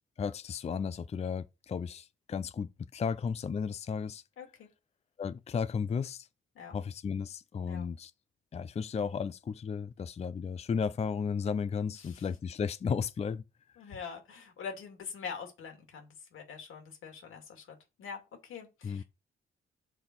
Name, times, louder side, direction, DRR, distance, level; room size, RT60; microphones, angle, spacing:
voice 1, 0.2-4.2 5.2-6.3 6.7-8.1 8.5-13.4 18.8-19.0, left 6 dB, 30° left, 0.4 m, -34 dB
voice 2, 4.4-4.7 6.5-6.7 7.7-7.9 11.9-12.3 13.8-19.0, left 6 dB, 85° left, 2.4 m, -44 dB
6.8 x 3.8 x 6.1 m
cardioid pair, 80°, 21 cm